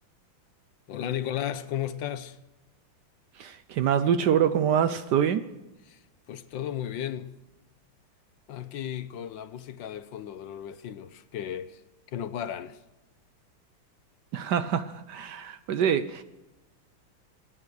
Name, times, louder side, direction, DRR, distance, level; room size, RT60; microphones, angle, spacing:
voice 1, 0.9-2.4 5.9-6.0 6.3-7.3 8.5-11.8 12.1-12.8, left 10 dB, 70° left, 1.4 m, -34 dB
voice 2, 3.4-5.4 14.3-16.2, right 8 dB, 65° right, 1.2 m, -25 dB
27.5 x 9.5 x 4.8 m
omnidirectional pair, 2.2 m